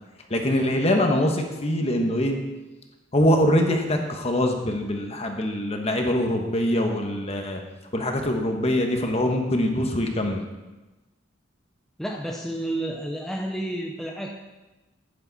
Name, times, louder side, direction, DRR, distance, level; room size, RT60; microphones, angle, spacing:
voice 1, 0.3-2.4 3.1-7.6 7.9-10.4, left 1 dB, 30° left, 3 dB, 1.2 m, -23 dB
voice 2, 12.0-14.3, right 1 dB, ahead, 0 dB, 0.6 m, -30 dB
11.5 x 8.7 x 4.1 m, 1.1 s
head